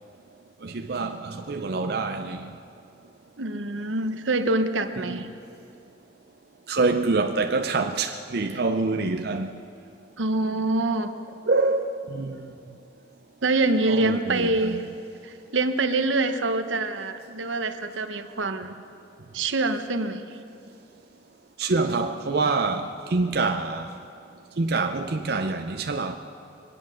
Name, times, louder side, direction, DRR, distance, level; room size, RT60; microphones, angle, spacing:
voice 1, 0.6-2.5 5.0-5.2 6.7-9.5 11.5-12.5 13.8-14.8 21.6-23.9 24.6-26.2, right 3 dB, 55° right, 0.6 m, -26 dB
voice 2, 3.4-5.3 10.2-11.1 13.4-14.8 15.2-18.7 19.3-20.4, right 2 dB, 85° right, 0.9 m, -25 dB
23.0 x 9.7 x 6.3 m
head